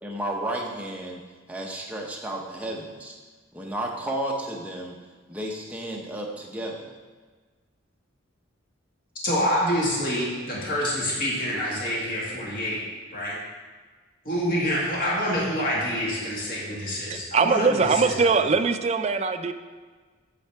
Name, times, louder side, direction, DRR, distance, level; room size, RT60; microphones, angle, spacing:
voice 1, 0.0-1.2 1.5-3.2 3.5-5.0 5.3-6.9, right 1 dB, 5° right, -1 dB, 0.8 m, -32 dB
voice 2, 9.2-12.8 13.1-13.4 14.3-17.8, equal, 45° left, -6 dB, 1.8 m, -26 dB
voice 3, 17.1-19.5, right 4 dB, 30° right, 8 dB, 0.3 m, -22 dB
8.4 x 6.5 x 3.5 m, 1.4 s
head